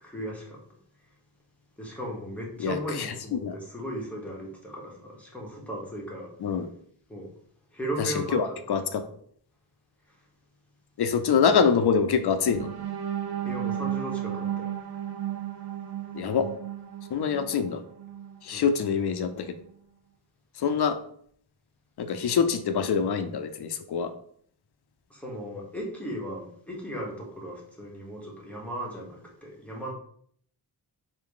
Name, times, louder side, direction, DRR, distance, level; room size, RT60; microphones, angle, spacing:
voice 1, 0.0-0.6 1.8-6.3 7.1-7.3 7.7-8.4 13.4-14.7 18.5-18.8 25.1-29.9, right 1 dB, 5° left, -3 dB, 1.0 m, -36 dB
voice 2, 2.6-3.6 6.4-6.7 8.0-9.0 11.0-12.7 16.1-16.5 17.1-17.8 18.4-19.5 20.6-21.0 22.0-24.1, left 6 dB, 65° left, 8 dB, 0.5 m, -25 dB
sound 1, 12.4-18.4 18.8-19.0 19.4-19.6, right 10 dB, 60° right, 0.6 m, -34 dB
4.5 x 2.7 x 3.7 m, 0.62 s
wide cardioid pair, 170°, 42 cm